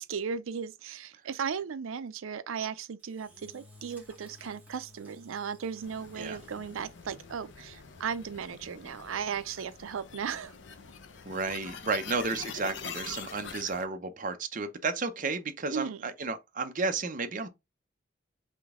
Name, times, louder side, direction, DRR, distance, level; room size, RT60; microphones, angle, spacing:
voice 1, 0.0-10.5 15.7-16.1, right 6 dB, 85° right, 0.5 m, -36 dB
Engine / Drill, 3.0-7.5, left 1 dB, 5° right, 1.5 m, -56 dB
sound 1, 5.8-13.8, left 6 dB, 65° left, 0.7 m, -45 dB
voice 2, 11.3-17.5, right 4 dB, 40° right, 0.6 m, -32 dB
3.7 x 3.4 x 3.6 m
head